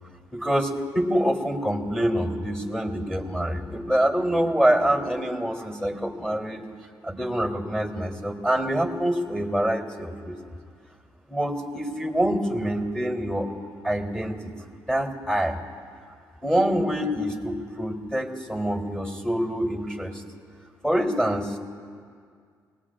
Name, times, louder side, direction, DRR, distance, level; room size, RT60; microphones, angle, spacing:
voice 1, 0.3-6.6 7.0-10.4 11.3-13.5 13.8-14.5 14.9-15.6 16.4-20.2 20.8-21.6, equal, 10° left, 1 dB, 3.3 m, -25 dB
27.0 x 20.0 x 2.5 m, 2.1 s
supercardioid pair, 55°, 8 cm